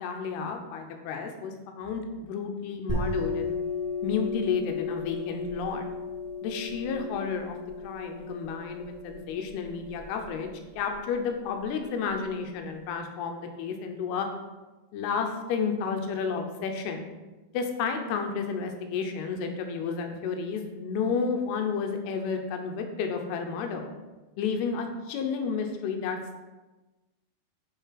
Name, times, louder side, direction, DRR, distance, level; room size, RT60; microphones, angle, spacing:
voice 1, 0.0-3.6 4.0-5.8 6.4-7.6 7.8-10.5 10.8-14.3 14.9-17.1 17.5-23.9 24.4-26.4, left 5 dB, 80° left, 4 dB, 2.8 m, -31 dB
sound 1, 2.9-12.2, left 4 dB, 20° right, 0.5 m, -35 dB
9.2 x 3.9 x 5.8 m, 1.2 s
omnidirectional pair, 4.6 m